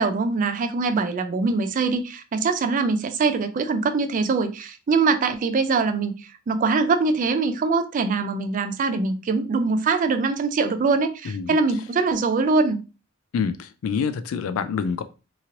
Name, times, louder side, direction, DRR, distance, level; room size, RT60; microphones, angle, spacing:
voice 1, 0.0-6.1 6.5-12.8, right 4 dB, 40° right, 0.3 m, -23 dB
voice 2, 11.3-11.6 13.3-15.0, left 6 dB, 75° left, 0.3 m, -26 dB
2.9 x 2.8 x 2.5 m
head